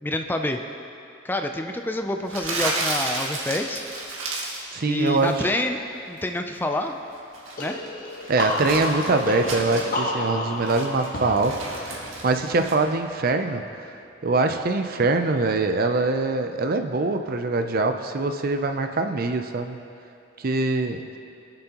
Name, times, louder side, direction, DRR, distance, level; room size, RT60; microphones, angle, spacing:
voice 1, 0.0-0.6 1.2-3.8 4.9-5.8 6.1-6.9 7.6-7.8, left 1 dB, 10° left, 5 dB, 0.4 m, -27 dB
Crumpling crinkling, 2.3-4.7 5.0-5.4 7.1-10.0 10.4-12.7, right 2 dB, 85° right, 2.0 m, -32 dB
voice 2, 4.7-5.5 8.3-11.6 11.9-13.6 14.2-19.8 20.4-21.0, right 3 dB, 45° right, 6 dB, 0.5 m, -23 dB
sound 1, 7.6-13.1, left 1 dB, 45° left, 1.4 m, -31 dB
23.0 x 7.7 x 3.0 m, 2.6 s
head